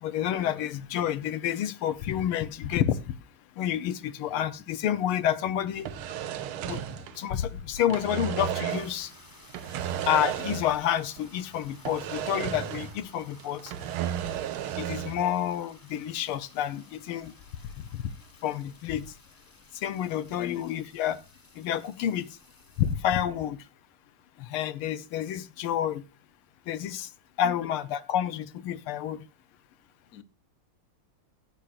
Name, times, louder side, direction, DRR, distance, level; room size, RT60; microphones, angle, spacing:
voice 1, 0.0-3.0 3.6-5.9 6.7-6.8 7.2-9.1 10.1-13.7 14.8-17.3 17.9-18.0 18.4-19.0 19.8-21.2 21.6-22.3 22.8-23.6 24.4-26.0 26.7-27.1 27.4-29.2, left 10 dB, 80° left, 1.6 m, -29 dB
voice 2, 4.3-4.7 7.5-7.6 20.3-20.7 27.4-27.7 30.1-30.2, left 10 dB, 55° left, 1.1 m, -42 dB
sound 1, 5.7-7.5 7.8-9.0 9.5-10.9 11.2-11.3 11.8-13.1 13.4-15.2, right 10 dB, 75° right, 1.6 m, -33 dB
sound 2, 8.7-22.9, left 2 dB, 10° left, 1.1 m, -56 dB
16.0 x 8.2 x 2.4 m
omnidirectional pair, 2.4 m